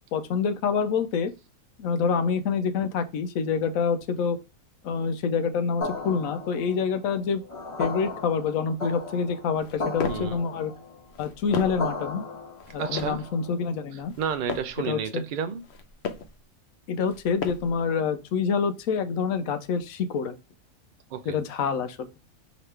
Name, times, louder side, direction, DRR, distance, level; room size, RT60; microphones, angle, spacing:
voice 1, 0.1-1.3 1.8-4.4 4.8-7.4 7.8-10.7 11.2-12.3 12.7-14.1 14.8-15.2 16.9-20.4 21.3-22.1, left 6 dB, 75° left, 1.0 m, -27 dB
sound 1, 5.8-13.6, left 3 dB, 25° left, 1.5 m, -36 dB
sound 2, 9.5-10.4 11.0-11.9 12.6-13.3 14.0-14.8 15.5-16.4 17.0-17.8, left 6 dB, 60° left, 0.8 m, -36 dB
voice 2, 10.0-10.4 12.8-13.2 14.2-15.6 21.1-21.4, right 7 dB, 85° right, 0.4 m, -31 dB
5.1 x 2.9 x 3.2 m
omnidirectional pair, 1.5 m